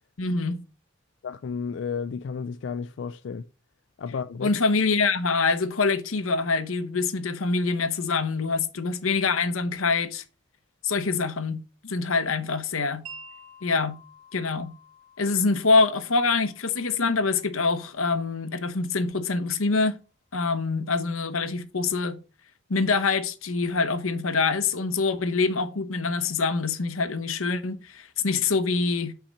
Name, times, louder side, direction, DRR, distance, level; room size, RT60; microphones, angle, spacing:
voice 1, 0.2-0.6 4.4-10.2 10.8-13.0 13.6-14.0 14.3-14.7 15.2-20.0 20.3-22.2 22.7-29.1, left 4 dB, 85° left, 0.9 m, -25 dB
voice 2, 1.2-3.5 4.0-4.5, left 5 dB, 60° left, 0.3 m, -32 dB
Wind chime, 13.1-19.1, right 2 dB, 80° right, 1.6 m, -50 dB
5.8 x 4.3 x 6.2 m
head